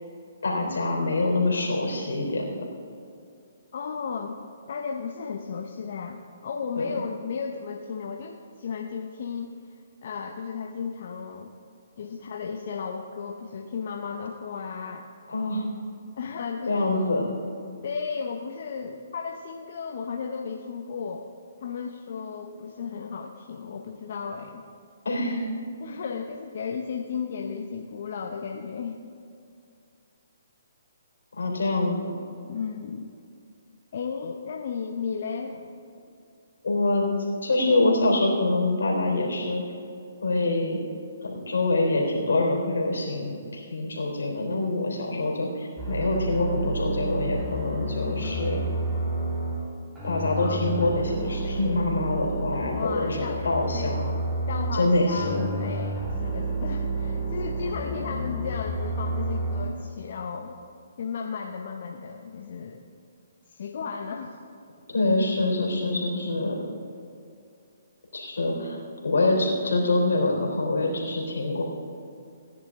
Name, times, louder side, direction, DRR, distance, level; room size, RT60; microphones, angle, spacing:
voice 1, 0.4-2.6 6.7-6.9 15.3-15.6 16.6-17.3 25.0-25.4 31.3-32.1 36.6-37.1 37.4-39.6 40.2-40.8 41.2-48.6 50.0-54.2 54.7-55.5 64.9-66.6 68.1-68.8 69.0-71.6, left 2 dB, 85° left, 0 dB, 3.4 m, -25 dB
voice 2, 3.7-4.4 4.7-11.5 12.0-15.1 16.2-17.3 17.8-21.3 21.6-24.6 25.8-29.0 32.4-33.1 33.9-35.6 50.4-50.7 52.6-53.4 53.7-54.1 54.5-60.6 61.0-62.8 63.5-64.4, left 6 dB, 60° left, 3 dB, 0.8 m, -34 dB
sound 1, 45.8-49.6 50.0-54.8 55.1-59.6, right 2 dB, 15° right, 3.5 m, -30 dB
17.0 x 10.0 x 3.7 m, 2.5 s
hypercardioid pair, 150°, 0 cm